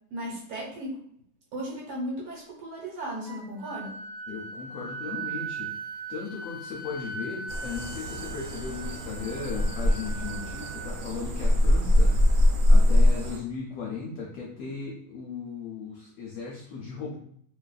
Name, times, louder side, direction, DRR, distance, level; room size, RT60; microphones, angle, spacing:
voice 1, 0.1-1.0 1.5-3.9, right 1 dB, 70° right, -4 dB, 1.3 m, -36 dB
Wind instrument woodwind instrument, 3.2-11.0, right 4 dB, 25° left, 0.8 m, -39 dB
voice 2, 4.3-5.7 6.1-12.2 12.7-17.2, left 5 dB, 70° left, -2 dB, 0.9 m, -37 dB
sound 1, 7.5-13.4, left 1 dB, 85° right, 1.1 m, -23 dB
2.6 x 2.4 x 2.3 m, 0.66 s
omnidirectional pair, 1.7 m